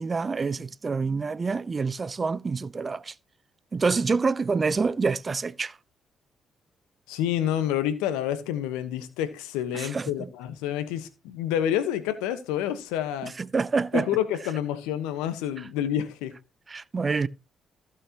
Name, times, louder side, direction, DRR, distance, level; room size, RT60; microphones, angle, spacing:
voice 1, 0.0-3.1 3.7-5.8 9.7-10.1 13.2-14.1 16.7-17.3, right 4 dB, 35° right, 0.6 m, -27 dB
voice 2, 7.1-13.3 13.9-16.3, left 10 dB, 85° left, 1.2 m, -28 dB
15.0 x 6.3 x 2.9 m
supercardioid pair, 55°, 0 cm